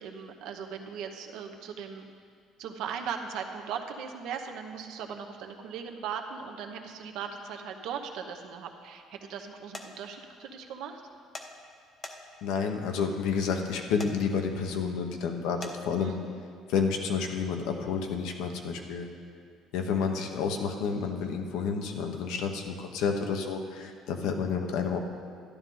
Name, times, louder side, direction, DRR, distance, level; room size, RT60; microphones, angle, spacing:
voice 1, 0.0-2.1 2.6-11.0 16.0-16.3, right 7 dB, 75° right, 4 dB, 0.9 m, -38 dB
sound 1, 9.7-9.9 11.3-11.5 12.0-12.5 14.0-14.1 15.6-15.8, left 3 dB, 25° left, 0.8 m, -40 dB
voice 2, 12.4-16.1 16.7-19.1 19.7-25.0, left 6 dB, 80° left, 4 dB, 1.0 m, -30 dB
12.0 x 10.5 x 3.8 m, 2.2 s
cardioid pair, 130°, 0 cm